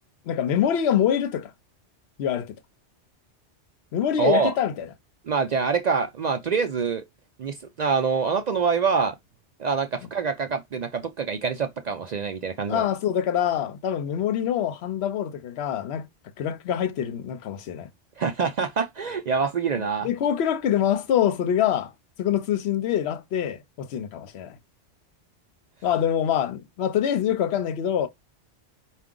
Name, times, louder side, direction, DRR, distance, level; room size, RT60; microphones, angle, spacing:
voice 1, 0.3-1.5 2.2-2.5 3.9-4.9 12.7-16.1 16.4-17.9 19.8-21.9 22.2-24.6 25.8-28.1, left 9 dB, 65° left, 0.9 m, -25 dB
voice 2, 4.2-4.5 5.3-7.0 7.4-9.2 9.6-12.8 18.2-20.1, right 5 dB, 60° right, 0.4 m, -25 dB
4.7 x 2.4 x 3.7 m
omnidirectional pair, 1.2 m